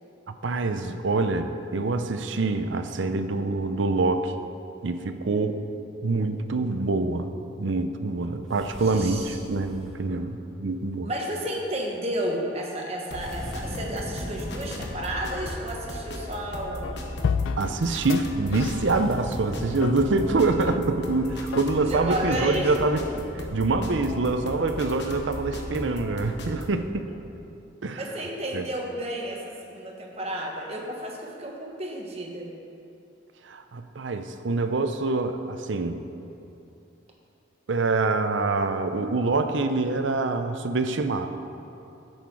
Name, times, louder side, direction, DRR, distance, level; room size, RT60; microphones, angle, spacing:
voice 1, 0.3-4.3 4.8-5.6 6.0-11.1 17.6-27.1 27.8-28.0 28.5-28.6 33.4-36.0 37.7-41.3, right 3 dB, 75° right, 8 dB, 0.6 m, -25 dB
sound 1, 8.5-10.0 13.2-15.0 18.8-20.5, equal, 5° left, 1.1 m, -39 dB
voice 2, 8.8-9.4 10.0-10.2 11.0-17.0 21.9-22.7 28.0-32.5, right 1 dB, 30° right, -1 dB, 1.3 m, -32 dB
sound 2, 13.1-26.8, left 1 dB, 65° left, 1.1 m, -36 dB
sound 3, 16.8-16.9 17.2-17.8 18.1-18.2 18.5-19.3 19.8-19.9 20.7-20.8 21.5-21.6 22.4-22.5, left 6 dB, 85° left, 0.3 m, -30 dB
10.5 x 8.0 x 4.7 m, 2.8 s
head